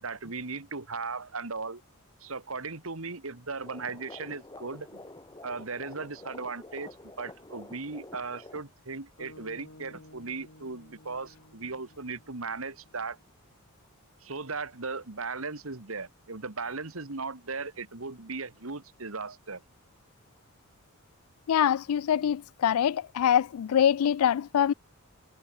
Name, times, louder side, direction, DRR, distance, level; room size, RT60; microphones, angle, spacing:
voice 1, 0.0-1.8 2.2-5.0 5.4-13.2 14.2-19.6, right 4 dB, 70° right, 2.0 m, -37 dB
sound 1, 3.6-8.6, left 2 dB, 20° left, 2.0 m, -48 dB
sound 2, 9.2-13.4, left 1 dB, 65° left, 7.4 m, -54 dB
voice 2, 21.5-24.7, left 9 dB, 85° left, 0.3 m, -24 dB
head